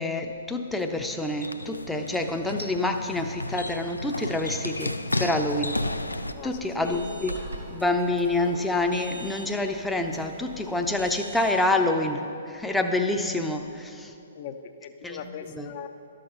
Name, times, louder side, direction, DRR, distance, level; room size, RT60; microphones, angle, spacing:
voice 1, 0.0-5.8 6.4-7.4 7.7-14.1 15.0-15.7, left 2 dB, 5° left, 4 dB, 0.6 m, -27 dB
sound 1, 0.7-6.3, left 2 dB, 85° left, 0.4 m, -33 dB
sound 2, 5.7-11.7, right 1 dB, 85° right, 1.9 m, -41 dB
voice 2, 6.3-7.2 14.3-15.9, left 7 dB, 45° left, 8 dB, 0.7 m, -39 dB
12.0 x 6.5 x 5.4 m, 2.6 s
figure-of-eight pair, 120°, 0 cm